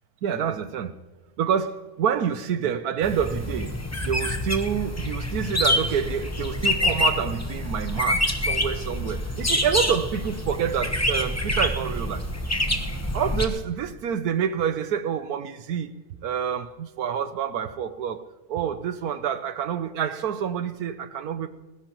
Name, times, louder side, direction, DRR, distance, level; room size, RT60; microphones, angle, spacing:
voice 1, 0.2-0.9 1.4-3.8 4.0-12.3 13.1-15.9 16.2-18.2 18.5-21.5, right 8 dB, 75° right, 1.2 m, -27 dB
sound 1, 3.0-13.5, left 1 dB, 15° left, 0.7 m, -26 dB
20.0 x 16.0 x 3.0 m
omnidirectional pair, 1.7 m